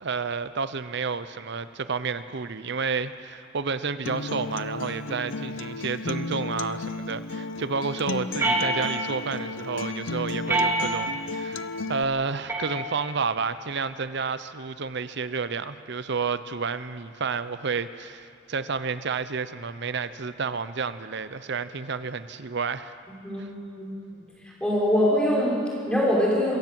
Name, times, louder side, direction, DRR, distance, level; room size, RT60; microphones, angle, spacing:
voice 1, 0.0-11.6 11.9-22.9, right 5 dB, 60° right, 13 dB, 0.8 m, -30 dB
Acoustic guitar, 4.0-12.0, left 3 dB, 75° left, 0.7 m, -33 dB
sound 1, 8.4-9.3 10.5-11.3 12.5-13.3, right 2 dB, 10° right, 3.2 m, -27 dB
voice 2, 23.2-24.0 24.6-26.6, equal, 5° left, -5 dB, 5.4 m, -23 dB
26.0 x 15.0 x 7.7 m, 2.4 s
head